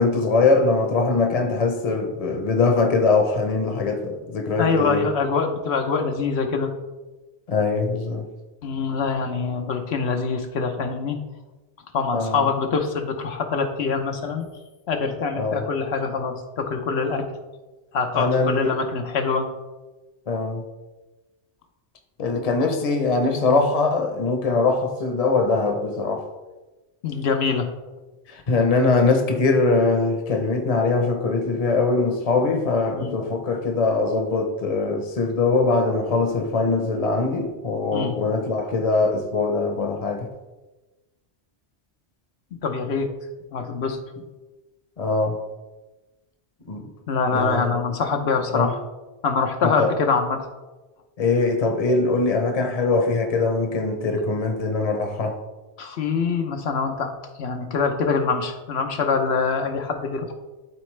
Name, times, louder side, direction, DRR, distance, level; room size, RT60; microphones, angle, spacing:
voice 1, 0.0-5.0 7.5-8.3 12.1-12.5 15.3-15.7 18.1-18.8 20.3-20.6 22.2-26.2 28.3-40.3 45.0-45.4 46.7-46.9 47.3-47.8 48.5-48.7 49.8-49.9 51.2-55.4, left 3 dB, 40° left, 4 dB, 0.9 m, -22 dB
voice 2, 4.6-6.7 8.6-11.2 11.9-14.4 14.9-17.2 17.9-19.5 27.0-27.7 32.9-33.2 37.9-38.1 42.6-43.1 43.5-44.0 47.1-48.8 49.2-50.4 55.8-57.1 57.4-60.3, left 5 dB, 80° left, 4 dB, 1.0 m, -24 dB
12.0 x 4.1 x 3.2 m, 1.1 s
omnidirectional pair, 1.1 m